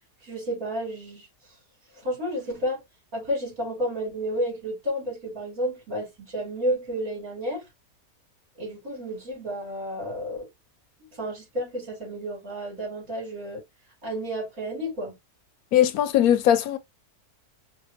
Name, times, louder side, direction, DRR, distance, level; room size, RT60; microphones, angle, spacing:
voice 1, 0.2-1.3 2.0-2.8 3.1-7.6 8.6-10.5 11.2-13.6 14.0-15.2, equal, 65° right, 3.8 m, -31 dB
voice 2, 15.7-16.8, left 10 dB, 75° left, 1.0 m, -20 dB
5.5 x 2.5 x 2.9 m
omnidirectional pair, 1.6 m